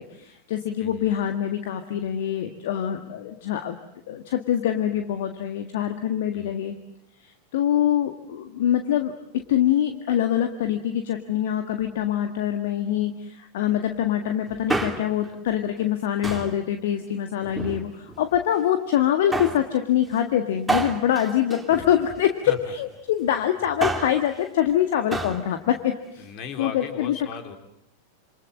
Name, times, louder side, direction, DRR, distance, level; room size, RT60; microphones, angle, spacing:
voice 1, 0.0-3.8 4.1-6.8 7.2-26.3 26.6-27.2, left 10 dB, 55° left, 7 dB, 1.7 m, -24 dB
Male speech man speaking, 14.5-15.3 16.2-16.6 17.4-18.2 19.3-19.7 20.7-22.3 23.6-24.2 25.1-25.4 25.7-25.8, right 2 dB, 5° right, 2.8 m, -29 dB
voice 2, 26.2-27.6, left 6 dB, 40° left, 6 dB, 4.1 m, -36 dB
27.5 x 27.5 x 7.7 m, 0.80 s
figure-of-eight pair, 90°, 0 cm